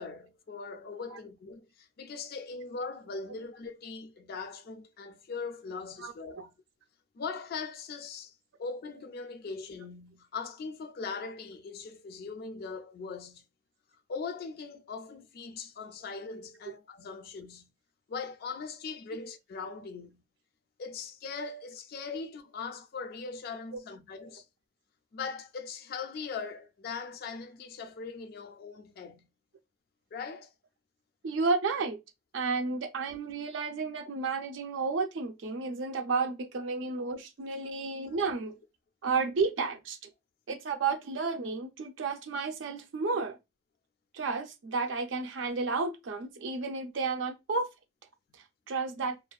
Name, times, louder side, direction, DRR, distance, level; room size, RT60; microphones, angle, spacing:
voice 1, 0.0-6.5 7.1-13.4 14.1-17.7 18.1-20.2 20.8-24.4 25.1-29.3 30.1-30.5 38.2-38.3, left 4 dB, 50° left, 0.3 m, -40 dB
voice 2, 6.0-6.5 31.2-32.0 32.3-38.6 39.0-40.0 40.5-43.4 44.1-47.7 48.7-49.2, right 4 dB, 70° right, 0.5 m, -32 dB
2.4 x 2.3 x 2.3 m
head